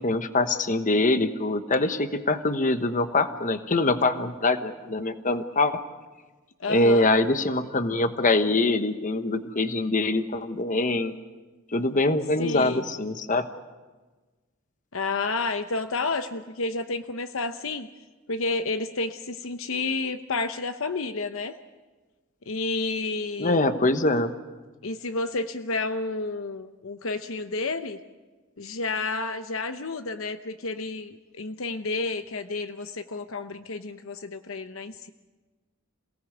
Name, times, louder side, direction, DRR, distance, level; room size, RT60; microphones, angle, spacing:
voice 1, 0.0-5.8 6.7-11.1 11.7-13.5 23.4-24.3, left 2 dB, 35° left, 9 dB, 1.1 m, -24 dB
voice 2, 6.6-7.1 12.4-12.8 14.9-17.9 18.3-21.5 22.5-23.6 24.8-28.0 28.6-35.1, left 3 dB, 65° left, 9 dB, 0.9 m, -30 dB
27.5 x 18.0 x 8.1 m, 1.3 s
head